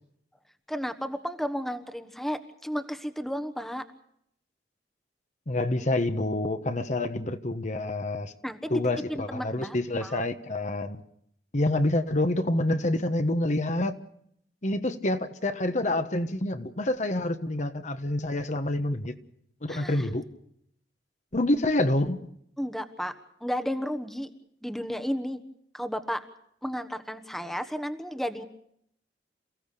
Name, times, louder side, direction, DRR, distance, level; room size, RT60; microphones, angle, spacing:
voice 1, 0.7-3.8 8.4-8.7 9.1-10.2 19.7-20.1 22.6-23.1 23.4-24.3 24.6-25.4 25.7-26.2 26.6-28.4, equal, ahead, 1.2 m, -33 dB
voice 2, 5.5-8.3 8.7-11.0 11.5-14.0 14.6-19.2 19.6-20.2 21.3-22.4, left 1 dB, 45° left, 1.2 m, -27 dB
28.5 x 16.0 x 6.7 m
head